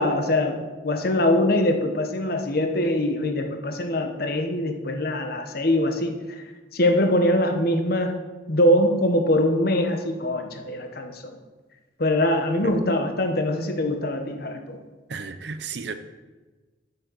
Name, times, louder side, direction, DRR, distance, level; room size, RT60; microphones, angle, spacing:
voice 1, 0.0-6.2 6.7-8.2 8.5-11.2 12.0-14.8, left 1 dB, 55° left, 6 dB, 1.0 m, -23 dB
voice 2, 15.1-15.9, right 5 dB, 65° right, 10 dB, 0.7 m, -34 dB
8.9 x 5.9 x 6.2 m, 1.3 s
head